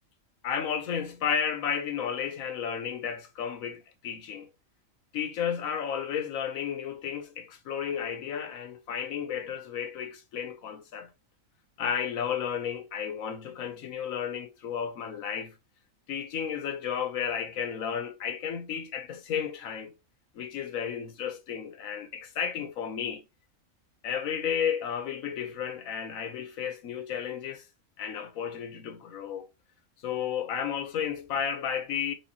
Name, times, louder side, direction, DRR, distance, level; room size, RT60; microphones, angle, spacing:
voice 1, 0.4-4.5 5.1-11.1 11.8-15.6 16.1-20.0 20.3-23.2 24.0-27.6 28.0-29.5 30.0-32.1, left 8 dB, 80° left, 1.2 m, -33 dB
4.6 x 3.4 x 2.8 m
omnidirectional pair, 1.4 m